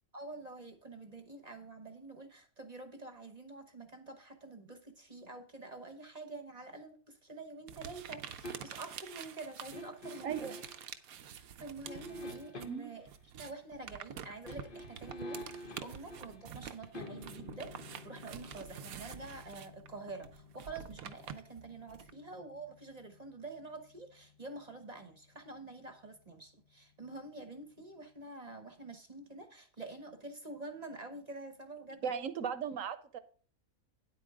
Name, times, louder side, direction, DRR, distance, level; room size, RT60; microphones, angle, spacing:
voice 1, 0.1-10.6 11.2-13.1 13.4-32.3, right 3 dB, 30° right, 7 dB, 1.0 m, -47 dB
sound 1, 7.7-12.8 13.0-22.1, right 8 dB, 90° right, 1.2 m, -48 dB
sound 2, 8.4-9.0 9.7-10.9 11.9-13.1 14.3-25.3 25.6-25.7, left 1 dB, 45° left, 1.0 m, -50 dB
voice 2, 10.2-10.6 12.7-12.9 32.0-33.2, right 7 dB, 70° right, 11 dB, 1.2 m, -37 dB
10.0 x 8.4 x 3.6 m, 0.42 s
omnidirectional pair, 1.5 m